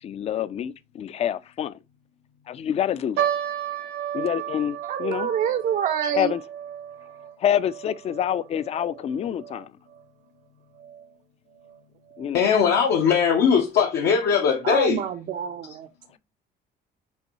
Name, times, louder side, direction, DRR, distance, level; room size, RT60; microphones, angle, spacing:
voice 1, 0.0-1.8 2.5-3.2 4.1-5.3 6.1-6.4 7.4-9.7 12.2-12.5, left 9 dB, 40° left, 0.4 m, -27 dB
sound 1, 3.2-9.7 9.9-10.0 10.8-11.1 11.7-11.8 12.1-12.3, right 10 dB, 85° right, 1.0 m, -33 dB
voice 2, 4.8-6.3 14.6-15.9, right 9 dB, 50° right, 0.4 m, -26 dB
voice 3, 12.3-15.1, left 7 dB, 75° left, 0.8 m, -20 dB
5.5 x 2.6 x 2.9 m
cardioid pair, 110°, 17 cm